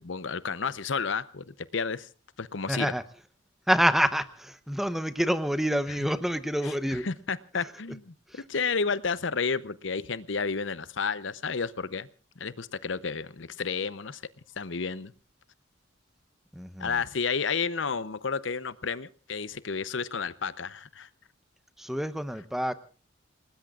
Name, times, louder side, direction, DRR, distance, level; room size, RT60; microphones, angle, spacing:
voice 1, 0.0-2.1 2.4-2.9 6.6-8.1 8.5-12.1 12.4-14.2 14.6-15.1 16.8-21.1, left 5 dB, 70° left, 15 dB, 0.8 m, -31 dB
voice 2, 2.7-3.0 3.7-7.1 8.3-8.4 16.5-17.0 21.8-22.7, equal, ahead, 11 dB, 0.9 m, -27 dB
28.5 x 19.5 x 2.5 m, 0.38 s
head